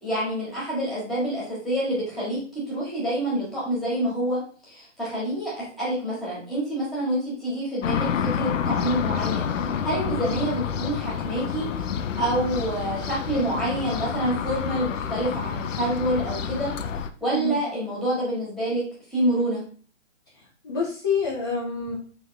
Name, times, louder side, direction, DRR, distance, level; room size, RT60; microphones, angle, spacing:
voice 1, 0.0-2.4 2.7-11.9 12.1-16.7 17.2-18.8 19.1-19.6, right 1 dB, ahead, -8 dB, 1.6 m, -27 dB
sound 1, 7.8-17.1, left 7 dB, 75° left, 0.5 m, -28 dB
voice 2, 20.6-22.0, left 4 dB, 20° left, -4 dB, 0.5 m, -27 dB
3.5 x 3.5 x 3.2 m, 0.42 s
hypercardioid pair, 140°, 38 cm